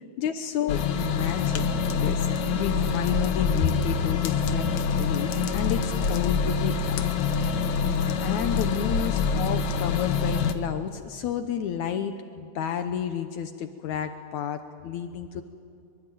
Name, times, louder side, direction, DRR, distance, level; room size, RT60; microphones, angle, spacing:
voice 1, 0.2-2.3 2.5-7.0 7.9-15.4, left 8 dB, 90° left, 8 dB, 1.7 m, -31 dB
sound 1, 0.7-10.5, left 5 dB, 65° left, 1.9 m, -26 dB
25.0 x 24.0 x 9.2 m, 2.3 s
omnidirectional pair, 4.7 m